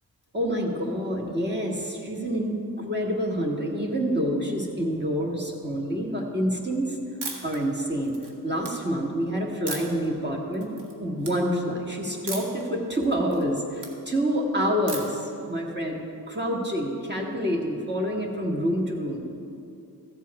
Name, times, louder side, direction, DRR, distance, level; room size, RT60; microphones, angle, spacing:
voice 1, 0.3-7.0 7.4-8.2 8.4-10.7 11.0-19.3, equal, 25° right, 0 dB, 1.7 m, -27 dB
sound 1, 7.2-7.6 8.0-8.7 9.7-10.1 10.5-10.9 11.2-11.3 12.3-12.6 13.0-13.9 14.9-15.3, right 3 dB, 85° right, 1.6 m, -36 dB
14.0 x 7.4 x 4.8 m, 2.6 s
cardioid pair, 85°, 39 cm